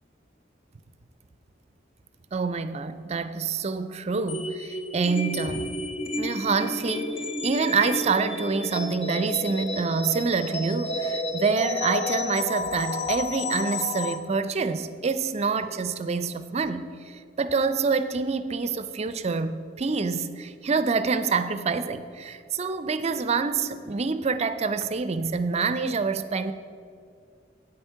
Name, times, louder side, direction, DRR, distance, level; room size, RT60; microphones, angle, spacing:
voice 1, 2.3-5.8 6.2-7.1 7.4-26.5, right 4 dB, 35° right, 12 dB, 0.5 m, -27 dB
sound 1, 4.3-14.2, left 2 dB, 30° left, 0.7 m, -31 dB
8.7 x 8.1 x 5.7 m, 2.3 s
head